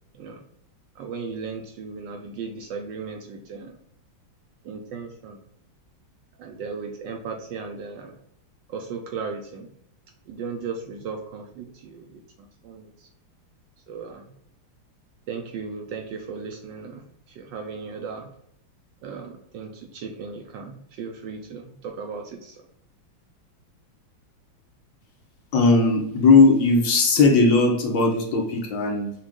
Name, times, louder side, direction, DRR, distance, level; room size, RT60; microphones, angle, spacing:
voice 1, 0.9-3.8 4.6-5.4 6.4-8.2 8.7-9.7 10.3-12.2 12.6-13.1 13.9-14.4 15.3-18.3 19.0-22.7, right 5 dB, 75° right, 3 dB, 1.1 m, -36 dB
voice 2, 25.5-29.1, left 3 dB, 65° left, 0 dB, 1.6 m, -18 dB
6.1 x 2.4 x 3.6 m, 0.72 s
omnidirectional pair, 2.3 m